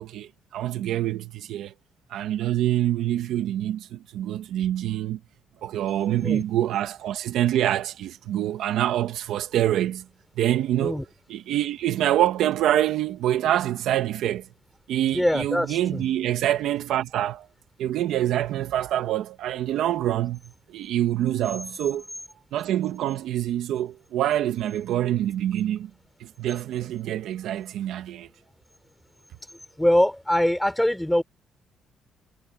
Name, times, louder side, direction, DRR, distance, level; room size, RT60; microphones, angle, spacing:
voice 1, 0.0-1.7 2.1-5.2 5.6-10.0 10.4-11.0 11.3-14.4 14.9-17.5 17.8-20.4 20.7-22.0 22.5-25.9 26.2-28.3, right 12 dB, 85° right, 1.5 m, -25 dB
voice 2, 15.1-16.0 29.8-31.2, left 1 dB, 5° left, 5.0 m, -23 dB
cardioid pair, 90°, 0 cm